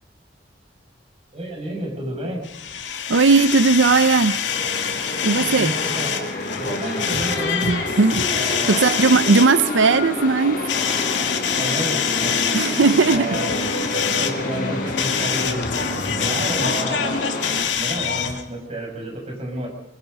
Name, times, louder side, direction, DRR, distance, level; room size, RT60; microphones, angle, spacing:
voice 1, 1.3-2.4 5.3-6.2 6.6-7.7 8.3-8.9 11.6-12.5 13.1-13.9 14.2-15.7 16.2-17.3 17.7-19.7, right 1 dB, 35° right, 0 dB, 6.4 m, -30 dB
sound 1, 2.4-18.4, left 7 dB, 75° left, 2.2 m, -26 dB
voice 2, 3.1-4.4 5.2-5.7 7.6-10.6 12.5-13.4, right 4 dB, 90° right, 14 dB, 0.6 m, -18 dB
sound 2, 4.4-17.6, left 2 dB, 50° left, 4.3 m, -29 dB
23.5 x 22.0 x 5.4 m, 0.93 s
head